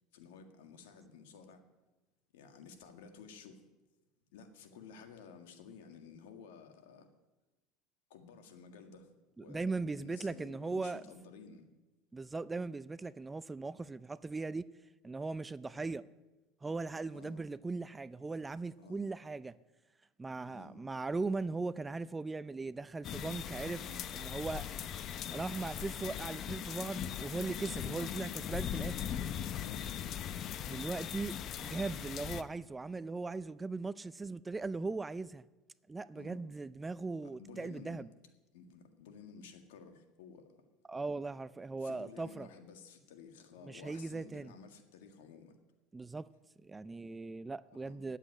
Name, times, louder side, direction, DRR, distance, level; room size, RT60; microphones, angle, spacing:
voice 1, 0.1-1.6 2.3-3.7 4.3-7.1 8.1-9.1 9.4-11.7 15.7-15.9 17.1-17.5 18.8-19.2 20.5-20.8 23.7-24.0 28.1-28.5 29.5-30.0 36.1-36.4 37.2-38.1 38.5-40.6 41.8-45.6 47.7-48.0, left 5 dB, 85° left, 1.7 m, -53 dB
voice 2, 9.5-11.0 12.1-14.7 15.0-16.1 16.6-19.6 20.2-23.8 24.1-24.7 25.3-29.2 30.7-35.5 35.9-38.1 40.9-42.5 43.6-44.5 45.9-46.3 46.6-48.2, right 3 dB, 15° right, 0.4 m, -39 dB
sound 1, 23.0-32.4, left 9 dB, 45° left, 0.7 m, -40 dB
sound 2, 24.4-24.7 25.5-25.7 26.7-26.9 27.7-27.9 28.5-28.7 29.8-30.0, right 8 dB, 35° right, 1.7 m, -60 dB
9.8 x 8.3 x 9.6 m
supercardioid pair, 105°, 0 cm